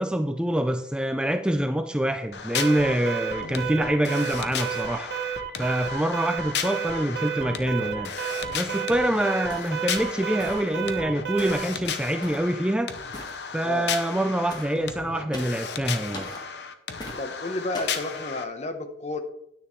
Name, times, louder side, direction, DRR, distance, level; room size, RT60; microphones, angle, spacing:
voice 1, 0.0-5.1 5.6-8.1 8.5-12.9 13.5-16.3, right 1 dB, 5° right, 7 dB, 0.4 m, -25 dB
sound 1, 2.3-18.4, left 6 dB, 70° left, 0.8 m, -35 dB
Alarm, 2.5-11.8, right 7 dB, 75° right, 1.2 m, -32 dB
sound 2, 9.5-9.8 10.4-10.8 11.4-11.7 12.2-12.5 13.1-13.4 14.5-14.7 15.3-15.6 16.1-16.4 17.0-17.2 17.7-18.0, left 1 dB, 25° left, 1.5 m, -40 dB
voice 2, 17.2-19.2, left 2 dB, 40° left, 7 dB, 0.9 m, -31 dB
9.6 x 9.5 x 3.1 m, 0.76 s
head